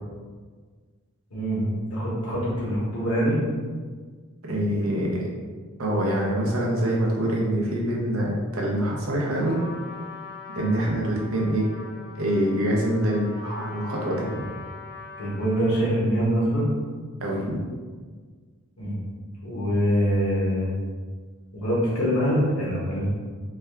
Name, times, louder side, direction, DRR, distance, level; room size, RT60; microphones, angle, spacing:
voice 1, 1.3-3.4 10.6-10.7 15.2-16.6 18.8-19.0 19.4-20.7 21.5-23.1, equal, 90° left, -6 dB, 1.0 m, -24 dB
voice 2, 4.4-5.3 5.8-9.6 10.5-11.7 12.1-14.5 17.2-17.6, right 1 dB, 75° right, -3 dB, 0.8 m, -25 dB
Trumpet, 9.3-15.9, left 4 dB, 55° left, 0.8 m, -42 dB
3.4 x 2.3 x 3.3 m, 1.5 s
head